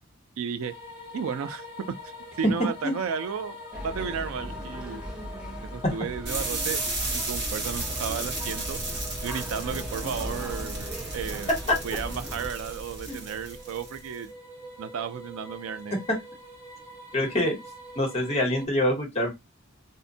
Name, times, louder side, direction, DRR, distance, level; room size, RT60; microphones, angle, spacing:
voice 1, 0.4-0.7 1.1-1.6 2.4-3.6 3.8-5.0 5.7-6.8 7.1-8.8 9.2-11.5 11.8-14.3 14.8-16.0, right 7 dB, 75° right, 0.3 m, -33 dB
sound 1, 0.6-18.6, left 1 dB, 40° right, 1.7 m, -44 dB
sound 2, 3.7-12.5, equal, 5° right, 0.4 m, -39 dB
sound 3, 6.3-14.2, right 2 dB, 55° right, 1.0 m, -34 dB
voice 2, 17.1-17.6 18.0-19.3, left 1 dB, 30° left, 0.8 m, -25 dB
2.6 x 2.1 x 2.6 m
head